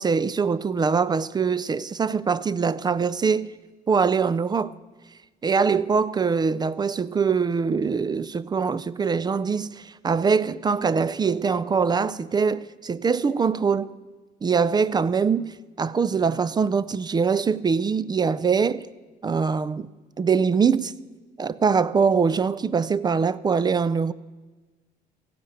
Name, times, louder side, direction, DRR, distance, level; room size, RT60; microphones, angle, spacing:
voice 1, 0.0-3.5 3.9-4.7 5.4-13.9 14.4-18.9 19.2-19.9 20.2-20.9 21.4-24.1, right 5 dB, 25° right, 0.4 m, -23 dB
15.0 x 9.8 x 8.7 m
cardioid pair, 110°, 17 cm